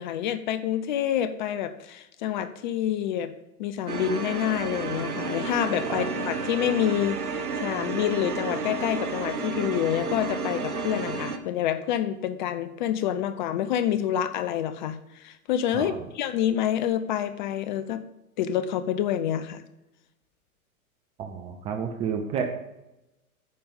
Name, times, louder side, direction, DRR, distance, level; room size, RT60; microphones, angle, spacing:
voice 1, 0.0-3.3 3.6-18.0 18.4-19.6, left 10 dB, 35° left, 11 dB, 0.5 m, -27 dB
sound 1, 3.9-11.4, right 4 dB, 85° right, 1.0 m, -31 dB
voice 2, 21.2-22.4, right 7 dB, 15° right, 5 dB, 0.4 m, -30 dB
9.5 x 5.2 x 5.2 m, 0.94 s
figure-of-eight pair, 105°, 44 cm